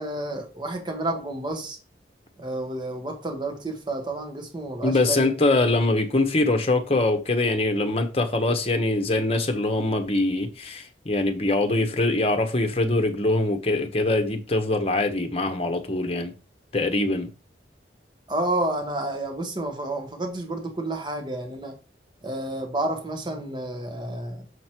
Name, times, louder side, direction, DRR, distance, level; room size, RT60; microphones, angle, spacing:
voice 1, 0.0-1.8 2.4-5.3 18.3-21.8 22.2-24.5, right 1 dB, 25° right, 1.3 m, -30 dB
voice 2, 4.8-16.3 16.7-17.3, left 2 dB, 35° left, 1.1 m, -23 dB
6.7 x 5.1 x 4.5 m
head